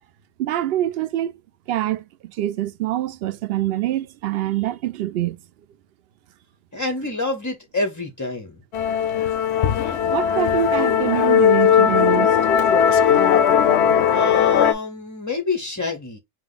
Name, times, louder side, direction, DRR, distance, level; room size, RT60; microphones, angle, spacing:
voice 1, 0.4-1.3 1.7-2.0 2.4-5.4 10.1-12.4, right 13 dB, 65° right, 0.7 m, -24 dB
voice 2, 6.7-8.6 14.1-16.2, left 3 dB, 20° left, 0.4 m, -27 dB
Musical instrument, 8.7-14.7, left 8 dB, 65° left, 0.8 m, -18 dB
5.3 x 2.2 x 3.7 m
omnidirectional pair, 1.3 m